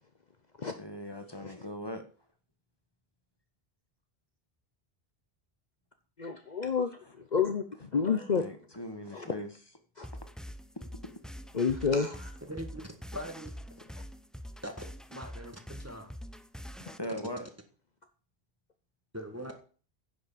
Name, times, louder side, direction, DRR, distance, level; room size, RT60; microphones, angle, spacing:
voice 1, 0.8-2.0 8.4-9.5 10.7-10.8 16.8-17.5, left 1 dB, 25° left, 6 dB, 1.6 m, -39 dB
voice 2, 6.2-8.4 9.1-9.3 10.0-10.1 11.5-12.3 16.9-17.0, left 5 dB, 45° left, 7 dB, 1.0 m, -30 dB
sound 1, 10.0-17.0, equal, ahead, 0.4 m, -45 dB
voice 3, 12.5-12.9 13.1-13.5 14.6-14.7 15.1-16.1 19.1-19.5, equal, 15° right, 4 dB, 1.7 m, -41 dB
10.5 x 6.4 x 7.5 m, 0.39 s
omnidirectional pair, 1.0 m